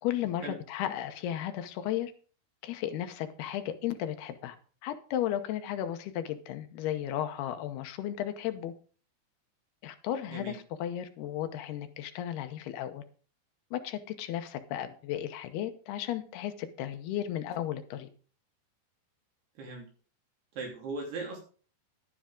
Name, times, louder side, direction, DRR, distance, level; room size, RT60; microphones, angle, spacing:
voice 1, 0.0-2.1 2.6-4.6 4.8-8.7 9.8-13.0 13.7-18.1, left 11 dB, 80° left, 8 dB, 2.8 m, -34 dB
voice 2, 10.3-10.6 19.6-19.9 20.6-21.4, right 3 dB, 80° right, 0 dB, 5.0 m, -38 dB
11.5 x 9.8 x 3.7 m, 0.40 s
omnidirectional pair, 4.7 m